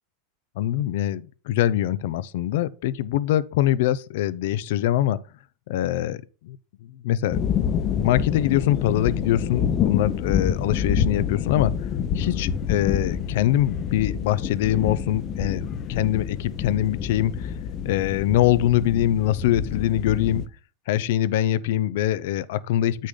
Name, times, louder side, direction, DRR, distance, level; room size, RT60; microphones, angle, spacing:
voice 1, 0.6-5.2 5.7-6.2 6.4-6.6 7.0-7.4 7.9-11.7 12.2-17.6 17.8-20.4 20.9-23.1, left 13 dB, 75° left, 0.5 m, -23 dB
sound 1, 7.3-20.5, left 8 dB, 40° left, 0.7 m, -27 dB
8.2 x 6.4 x 3.8 m
supercardioid pair, 125°, 0 cm